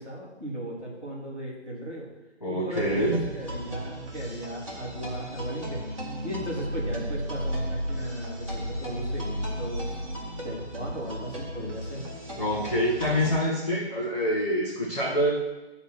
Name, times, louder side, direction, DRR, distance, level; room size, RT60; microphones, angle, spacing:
voice 1, 0.0-2.1 2.5-5.8 6.2-10.0 10.4-12.0, right 1 dB, 10° left, -14 dB, 1.7 m, -36 dB
voice 2, 2.4-3.2 12.4-15.3, equal, 35° left, -6 dB, 1.5 m, -26 dB
sound 1, 2.7-13.3, equal, 25° right, 1.8 m, -34 dB
10.5 x 4.1 x 6.2 m, 1.1 s
figure-of-eight pair, 175°, 35 cm